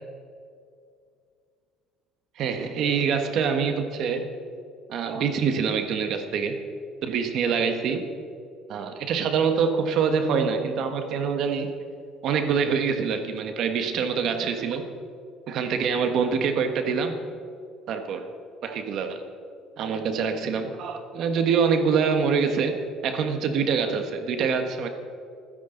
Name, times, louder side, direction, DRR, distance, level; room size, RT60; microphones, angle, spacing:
voice 1, 2.4-4.3 4.9-6.5 7.0-8.1 8.7-11.7 12.2-14.8 15.5-17.2 17.9-18.2 18.6-19.2 19.8-24.9, right 6 dB, 55° right, 6 dB, 1.4 m, -25 dB
27.0 x 10.0 x 3.9 m, 2.4 s
cardioid pair, 130°, 0 cm